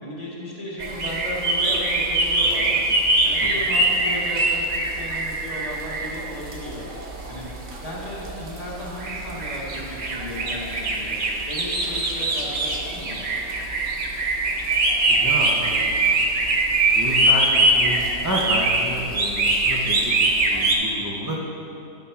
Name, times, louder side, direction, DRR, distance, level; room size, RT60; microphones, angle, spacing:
voice 1, 0.0-2.9 3.2-6.9 7.3-7.5 7.7-11.1 11.5-13.2, left 1 dB, 30° left, -6 dB, 1.5 m, -35 dB
sound 1, 0.8-20.7, right 2 dB, 45° right, 0.8 m, -23 dB
voice 2, 15.1-16.4 16.9-20.2 20.5-21.4, equal, 25° right, -5 dB, 0.4 m, -30 dB
8.5 x 4.1 x 5.7 m, 2.9 s
omnidirectional pair, 1.5 m